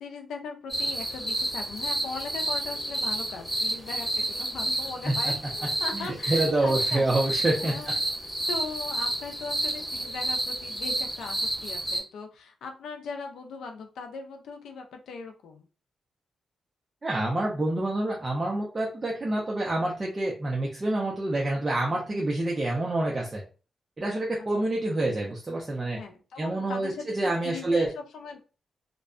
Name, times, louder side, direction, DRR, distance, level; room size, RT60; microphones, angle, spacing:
voice 1, 0.0-7.1 7.6-7.9 8.5-15.7 24.4-24.7 25.9-28.4, left 4 dB, 90° left, 4 dB, 0.4 m, -39 dB
sound 1, 0.7-12.0, right 1 dB, 5° right, 1.5 m, -30 dB
voice 2, 5.9-7.9 17.0-23.4 24.0-26.0 26.4-27.9, right 2 dB, 30° right, -3 dB, 0.6 m, -27 dB
2.5 x 2.2 x 2.4 m, 0.35 s
cardioid pair, 80°, 0 cm